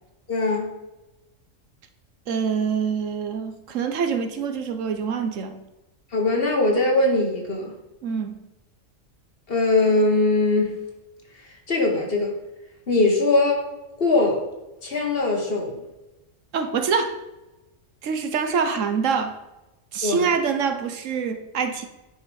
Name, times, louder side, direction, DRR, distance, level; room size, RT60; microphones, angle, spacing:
voice 1, 0.3-0.7 6.1-7.7 9.5-10.7 11.7-12.3 12.9-13.7 14.0-14.4 14.8-15.8 20.0-20.2, left 2 dB, 45° left, 1 dB, 1.7 m, -21 dB
voice 2, 2.3-5.6 8.0-8.3 16.5-17.2 18.0-19.3 19.9-21.8, right 6 dB, 75° right, 8 dB, 1.2 m, -25 dB
10.0 x 5.1 x 5.3 m, 1.0 s
omnidirectional pair, 1.3 m